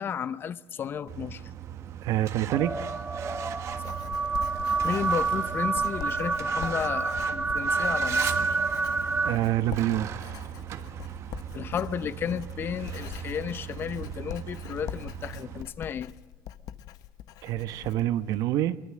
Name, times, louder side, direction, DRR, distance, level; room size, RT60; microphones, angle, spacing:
voice 1, 0.0-1.4 3.8-4.0 4.8-8.6 11.5-16.1, left 8 dB, 35° left, 16 dB, 0.8 m, -33 dB
Truck, 1.1-15.6, right 10 dB, 45° right, 1.5 m, -39 dB
voice 2, 2.0-2.9 9.2-10.1 17.4-18.8, right 13 dB, 65° right, 14 dB, 1.1 m, -26 dB
sound 1, 2.5-9.4, right 4 dB, 15° right, 0.9 m, -28 dB
Writing, 3.0-18.4, left 12 dB, 65° left, 1.0 m, -44 dB
25.0 x 23.0 x 7.6 m, 0.96 s
cardioid pair, 160°, 7 cm